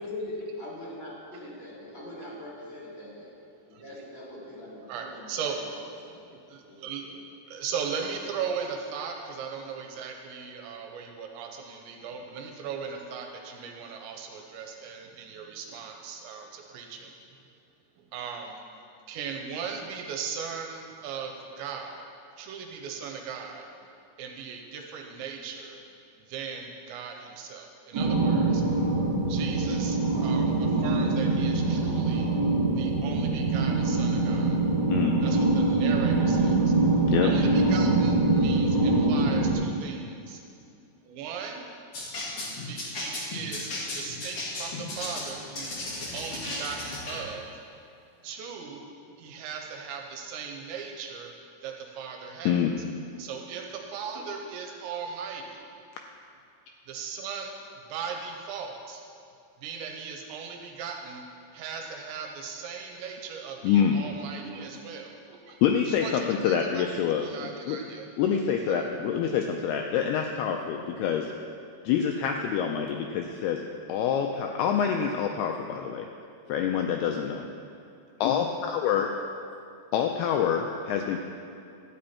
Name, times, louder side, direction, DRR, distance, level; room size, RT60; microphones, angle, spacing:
voice 1, 0.0-3.3 3.7-5.7 6.0-6.2 6.6-7.1, left 1 dB, 20° left, -8 dB, 1.9 m, -41 dB
voice 2, 4.9-5.6 6.3-7.0 7.5-17.1 18.0-18.6 19.1-22.1 22.4-23.6 24.2-25.8 26.2-28.6 29.3-34.6 35.2-36.7 37.2-40.4 41.0-41.6 42.7-45.8 46.1-47.5 48.2-48.9 49.2-51.3 51.6-52.7 53.2-55.7 56.9-57.6 57.9-59.0 59.6-61.2 61.5-65.6 65.9-66.1 66.5-66.8 67.2-68.4 68.7-68.9, right 6 dB, 85° right, 2 dB, 3.1 m, -38 dB
sound 1, 27.9-39.5, right 3 dB, 45° right, 1.5 m, -24 dB
voice 3, 34.9-35.2 37.1-37.3 52.5-52.7 63.6-64.0 65.6-67.8 68.2-71.3 71.9-73.6 73.9-76.1 76.5-77.5 78.2-79.1 79.9-81.2, left 8 dB, 85° left, 3 dB, 2.3 m, -26 dB
sound 2, 41.9-47.2, left 2 dB, 45° left, 2.1 m, -35 dB
13.0 x 9.6 x 4.3 m, 2.5 s
omnidirectional pair, 5.1 m